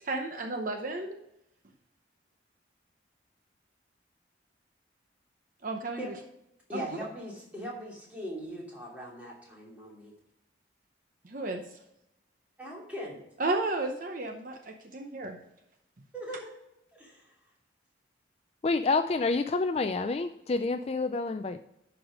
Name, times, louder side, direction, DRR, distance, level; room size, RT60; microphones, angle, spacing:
voice 1, 0.0-1.2 5.6-6.1 6.7-6.8 11.2-11.6 13.4-15.4, right 2 dB, 45° right, 4 dB, 0.8 m, -33 dB
voice 2, 6.7-10.1 12.6-13.2 16.1-16.5 16.9-17.3, equal, 10° right, -4 dB, 2.8 m, -40 dB
voice 3, 18.6-21.6, left 3 dB, 30° left, 9 dB, 0.3 m, -28 dB
11.0 x 4.7 x 5.1 m, 0.84 s
head